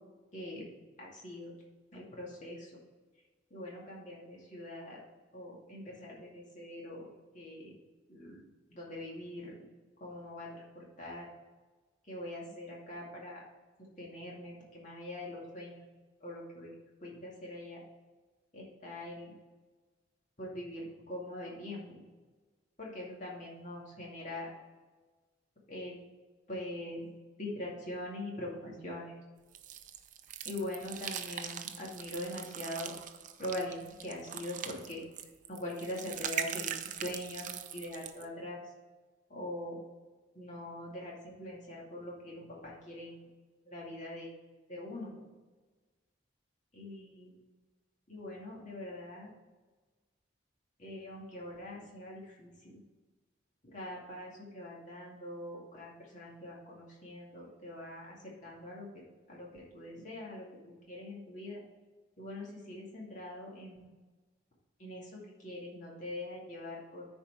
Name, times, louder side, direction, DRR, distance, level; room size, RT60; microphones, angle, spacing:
voice 1, 0.3-0.6 1.0-1.5 1.9-2.7 3.5-5.0 5.3-7.7 8.1-8.4 8.7-9.5 10.0-11.2 12.1-13.4 14.0-15.8 16.2-16.7 17.0-17.8 18.5-19.3 20.4-22.0 22.8-24.5 25.7-26.0 26.5-27.1 27.4-29.2 30.4-32.9 33.4-35.0 35.5-36.7 37.0-38.6 39.3-39.8 40.3-43.1 43.7-44.3 44.7-45.2 46.8-47.3 48.1-49.3 50.8-52.5 53.7-58.9 59.3-61.6 62.2-63.9 64.8-67.1, left 1 dB, 40° left, -4 dB, 2.3 m, -43 dB
sound 1, 29.5-38.2, right 9 dB, 40° right, 0.5 m, -41 dB
9.9 x 4.5 x 4.7 m, 1.3 s
head